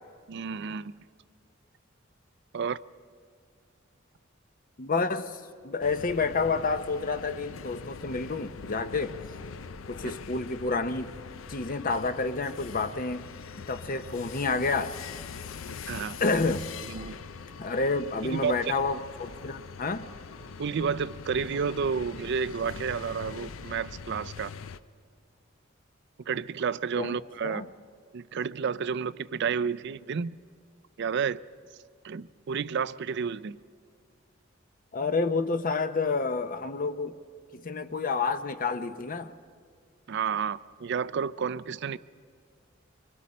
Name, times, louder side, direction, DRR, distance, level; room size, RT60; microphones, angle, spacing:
voice 1, 0.3-1.0 2.5-2.8 15.9-16.2 16.9-17.2 18.3-18.7 20.6-24.5 26.3-27.6 28.1-30.4 31.0-31.4 32.0-33.6 40.1-42.0, right 6 dB, 60° right, 0.4 m, -31 dB
voice 2, 4.8-9.2 9.9-11.1 11.5-13.3 13.7-14.9 16.2-16.7 17.6-20.1 27.0-27.1 27.4-27.7 34.9-37.2 37.5-39.3, left 4 dB, 45° left, 0.7 m, -29 dB
sound 1, 5.8-24.8, left 5 dB, 90° left, 0.6 m, -42 dB
25.5 x 24.5 x 4.3 m
head